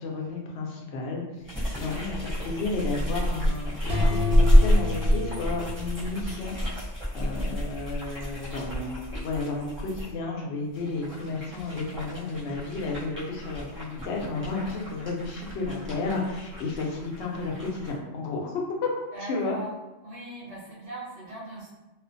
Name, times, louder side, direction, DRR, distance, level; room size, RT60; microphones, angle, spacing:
voice 1, 0.0-18.5 18.8-18.9 19.2-19.6, left 3 dB, 75° left, -1 dB, 0.8 m, -32 dB
sound 1, 1.5-10.1 10.7-18.0, equal, 10° right, 0.9 m, -28 dB
sound 2, 3.9-6.7, left 5 dB, 85° right, 1.2 m, -32 dB
voice 2, 19.1-19.7 20.0-21.7, right 1 dB, 65° right, -8 dB, 1.1 m, -40 dB
2.5 x 2.4 x 2.5 m, 1.1 s
omnidirectional pair, 1.2 m